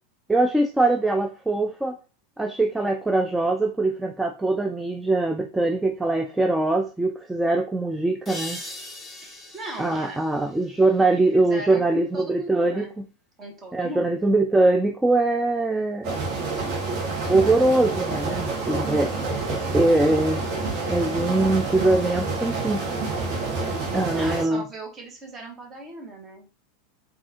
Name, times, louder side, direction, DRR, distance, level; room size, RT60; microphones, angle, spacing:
voice 1, 0.3-2.0 2.4-8.6 9.8-12.9 13.7-16.1 17.3-20.5 20.9-22.8 23.9-24.6, right 2 dB, 10° right, 0.3 m, -22 dB
sound 1, 8.2-11.6, left 1 dB, 15° left, 1.0 m, -40 dB
voice 2, 9.2-10.3 11.1-12.9 13.4-14.2 24.1-26.5, right 2 dB, 30° right, 1.2 m, -39 dB
sound 2, 16.0-24.4, right 3 dB, 50° right, 1.0 m, -28 dB
3.5 x 2.4 x 2.8 m
hypercardioid pair, 85°, 0 cm